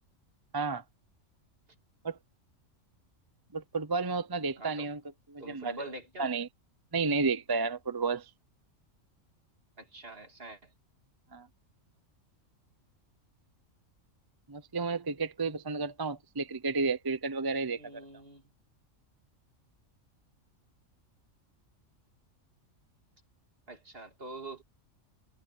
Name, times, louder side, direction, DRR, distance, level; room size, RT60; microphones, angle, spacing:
voice 1, 3.5-5.0 5.3-5.8 6.2-6.5 6.9-8.3 11.3-11.5 14.5-18.0, right 4 dB, 25° right, 0.5 m, -32 dB
voice 2, 4.6-4.9 5.4-6.3 9.8-10.7 17.7-18.5 23.7-24.6, right 2 dB, 45° right, 2.9 m, -45 dB
omnidirectional pair, 1.3 m